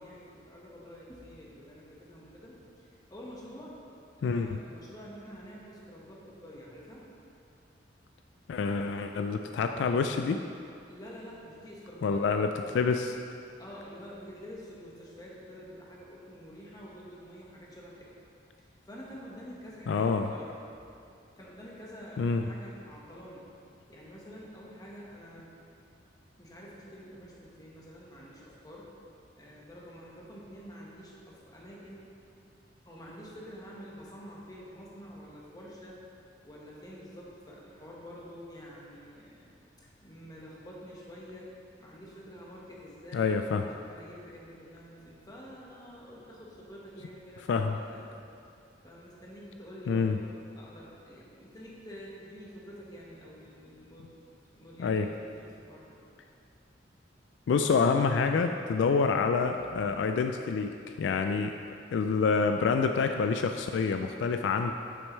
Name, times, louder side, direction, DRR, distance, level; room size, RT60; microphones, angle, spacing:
voice 1, 0.0-3.8 4.2-7.1 10.9-12.8 13.6-18.1 18.8-20.5 21.4-23.5 23.9-25.6 26.4-28.9 29.4-32.0 32.9-36.0 36.4-39.5 39.8-48.0 48.8-50.3 50.6-54.2 54.5-56.0 56.4-56.5 59.5-59.6, equal, 20° left, -5 dB, 1.3 m, -48 dB
voice 2, 4.2-4.6 8.5-10.4 12.0-13.2 19.9-20.3 22.2-22.4 43.1-43.6 47.5-47.8 49.9-50.2 54.8-55.1 57.5-60.7 61.0-61.5 61.9-64.7, left 5 dB, 70° left, 6 dB, 0.3 m, -27 dB
8.6 x 6.5 x 3.1 m, 2.5 s
head